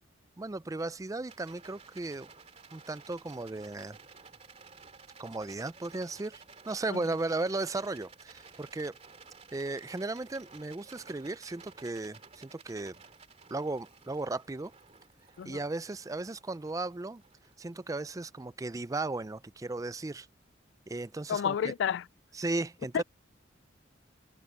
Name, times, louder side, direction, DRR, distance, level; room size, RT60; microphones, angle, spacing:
voice 1, 0.4-2.3 2.7-4.0 5.2-9.0 9.5-13.0 13.5-14.7 15.4-17.2 17.6-20.3 20.9-21.7 22.3-23.0, right 2 dB, 15° right, 0.4 m, -36 dB
Rattle, 1.2-18.6, right 5 dB, 35° right, 2.6 m, -55 dB
voice 2, 21.3-22.0 22.9-23.0, left 8 dB, 65° left, 0.3 m, -30 dB
head